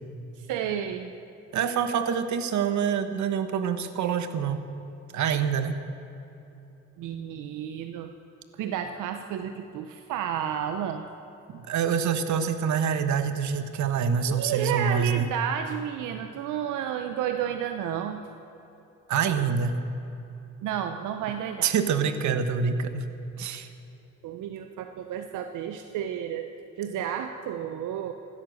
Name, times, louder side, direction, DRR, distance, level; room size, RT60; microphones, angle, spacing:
voice 1, 0.4-1.1 7.0-8.1 8.5-11.0 14.3-18.2 20.6-21.7 24.2-28.1, right 9 dB, 90° right, 7 dB, 0.8 m, -31 dB
voice 2, 1.5-4.6 5.1-5.8 11.5-15.3 19.1-19.8 21.6-23.1 23.4-23.7, right 7 dB, 70° right, 9 dB, 1.2 m, -26 dB
16.5 x 13.0 x 6.4 m, 3.0 s
cardioid pair, 90°, 30 cm